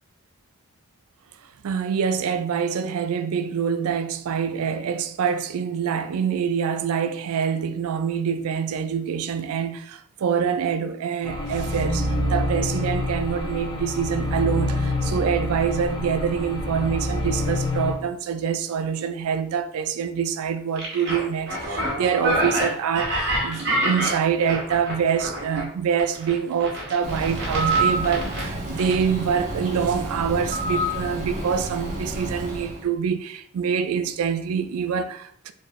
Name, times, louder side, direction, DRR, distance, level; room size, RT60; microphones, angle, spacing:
voice 1, 1.6-35.5, right 7 dB, 80° right, 0.3 m, -25 dB
sound 1, 11.2-17.9, left 1 dB, 20° left, 0.5 m, -26 dB
sound 2, 20.8-25.6 26.0-28.5 28.8-28.9, right 1 dB, 50° right, 1.5 m, -27 dB
Bird, 27.0-32.8, right 2 dB, 30° right, 0.7 m, -28 dB
4.3 x 2.5 x 3.0 m
head